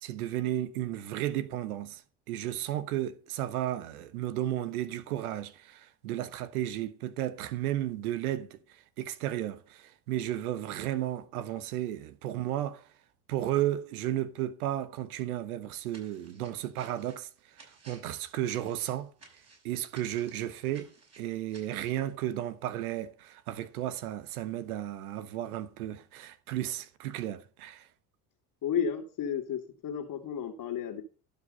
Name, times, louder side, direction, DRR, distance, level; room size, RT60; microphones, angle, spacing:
voice 1, 0.0-2.0 2.3-8.6 9.0-12.8 13.3-17.3 17.9-19.1 19.6-20.9 21.2-27.8, right 13 dB, 85° right, 1.1 m, -33 dB
sound 1, 15.9-22.0, right 4 dB, 35° right, 5.8 m, -56 dB
voice 2, 28.6-31.0, left 7 dB, 50° left, 2.0 m, -32 dB
11.5 x 5.3 x 5.3 m
hypercardioid pair, 70°, 42 cm